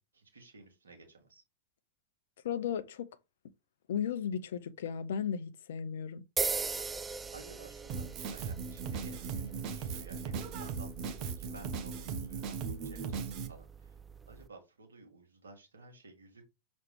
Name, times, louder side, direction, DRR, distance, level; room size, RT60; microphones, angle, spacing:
voice 1, 0.0-1.4 7.3-14.0 14.3-16.4, right 3 dB, 70° right, 2.1 m, -54 dB
voice 2, 2.4-3.1 3.9-6.2, left 8 dB, 60° left, 0.7 m, -35 dB
sound 1, 6.4-14.5, right 4 dB, 15° right, 0.4 m, -41 dB
Drum kit, 7.9-13.5, right 6 dB, 40° right, 1.1 m, -38 dB
6.7 x 4.2 x 3.4 m
figure-of-eight pair, 90°, 0 cm